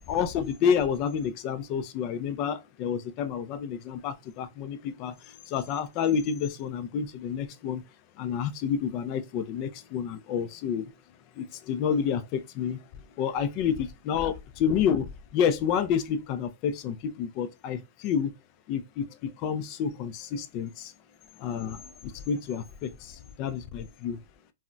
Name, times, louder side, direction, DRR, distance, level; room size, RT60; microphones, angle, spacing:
voice 1, 0.0-5.1 5.5-7.8 8.2-10.9 11.4-12.8 13.2-18.3 18.7-20.9 21.4-24.2, left 7 dB, 35° left, 0.3 m, -29 dB
3.7 x 2.0 x 2.2 m
hypercardioid pair, 150°, 0 cm